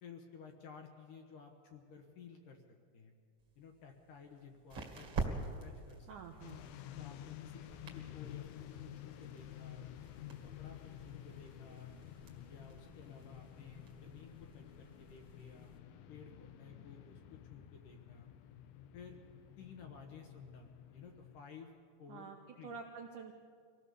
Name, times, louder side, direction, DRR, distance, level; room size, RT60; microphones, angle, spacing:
voice 1, 0.0-2.6 2.9-3.1 3.6-6.5 7.0-9.9 10.4-11.9 12.5-15.7 16.1-18.3 18.9-19.2 19.6-21.7 22.0-22.8, left 6 dB, 65° left, 3 dB, 2.4 m, -55 dB
sound 1, 3.4-15.8, right 4 dB, 40° right, 2.4 m, -48 dB
voice 2, 6.1-6.7 22.1-22.4 22.6-23.4, right 5 dB, 80° right, 3 dB, 1.8 m, -48 dB
sound 2, 6.4-21.4, left 11 dB, 80° left, 2.2 m, -51 dB
24.5 x 18.0 x 6.9 m, 2.1 s
omnidirectional pair, 5.1 m